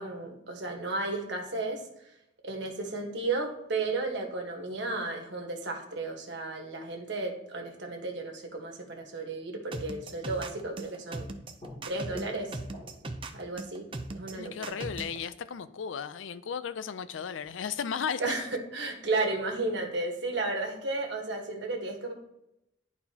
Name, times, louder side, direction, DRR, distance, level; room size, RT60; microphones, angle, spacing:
voice 1, 0.0-1.9 2.4-11.3 11.8-12.6 13.3-14.7 18.2-22.1, right 3 dB, 65° right, 1.3 m, -33 dB
sound 1, 9.7-15.2, right 2 dB, 25° right, 0.5 m, -38 dB
sound 2, 11.6-16.5 16.9-17.0 17.4-18.4, left 1 dB, 35° left, 2.6 m, -52 dB
voice 2, 14.3-18.4, left 7 dB, 85° left, 0.5 m, -35 dB
11.0 x 4.1 x 2.8 m
head